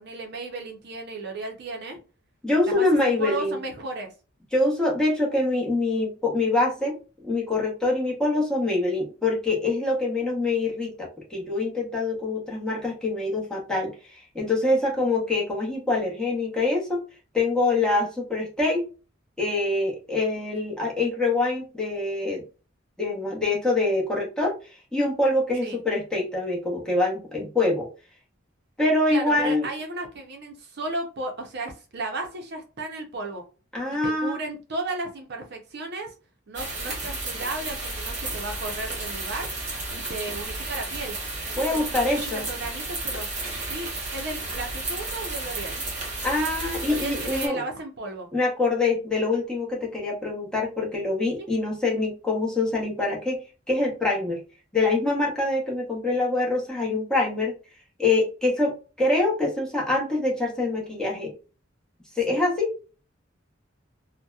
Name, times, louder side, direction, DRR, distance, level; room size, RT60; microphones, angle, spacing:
voice 1, 0.0-2.0 2.6-4.1 25.6-25.8 29.1-33.4 33.9-36.1 36.5-39.5 39.9-41.2 41.5-43.3 43.7-45.7 46.9-48.3 51.4-51.5 62.3-62.4, right 2 dB, 55° right, 2 dB, 0.5 m, -34 dB
voice 2, 2.4-3.6 4.5-7.0 7.2-13.9 14.3-17.0 17.3-18.8 19.4-22.4 23.0-24.5 24.9-27.9 28.8-29.7 33.7-34.4 41.6-42.4 46.2-47.6 48.3-53.4 53.7-54.4 54.7-57.5 58.0-61.3 62.2-62.7, left 2 dB, 5° left, -3 dB, 0.8 m, -25 dB
sound 1, 36.5-47.5, right 2 dB, 35° right, 0.9 m, -32 dB
2.7 x 2.1 x 2.3 m, 0.33 s
head